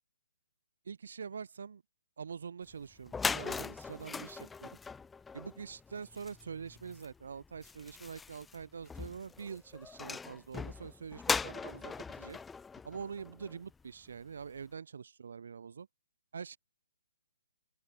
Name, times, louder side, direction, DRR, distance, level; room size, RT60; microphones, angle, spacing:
voice 1, 0.8-1.8 2.2-4.8 5.3-12.4 12.8-15.9 16.3-16.6, right 6 dB, 65° right, 0.8 m, -45 dB
sound 1, 2.7-2.8 3.0-13.8, left 5 dB, 10° left, 0.6 m, -40 dB
open air
hypercardioid pair, 140°, 0 cm